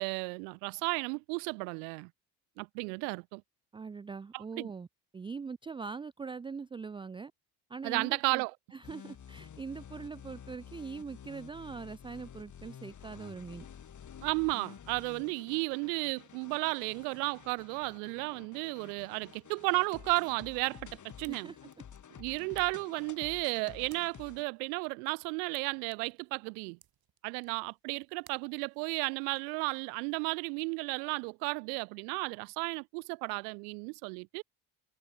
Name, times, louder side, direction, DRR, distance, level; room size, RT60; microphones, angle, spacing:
voice 1, 0.0-2.1 2.6-3.4 4.3-4.7 7.8-8.5 14.2-20.9 21.2-21.5 22.2-26.8 27.2-34.4, right 36 dB, 85° right, 0.7 m, -34 dB
voice 2, 3.7-4.9 5.1-7.3 7.7-8.4 8.7-13.7 21.3-21.8 22.3-22.4, right 5 dB, 15° right, 0.3 m, -42 dB
sound 1, 8.8-24.4, left 8 dB, 40° left, 2.2 m, -51 dB
sound 2, 20.9-29.5, right 10 dB, 50° right, 3.3 m, -65 dB
supercardioid pair, 75°, 46 cm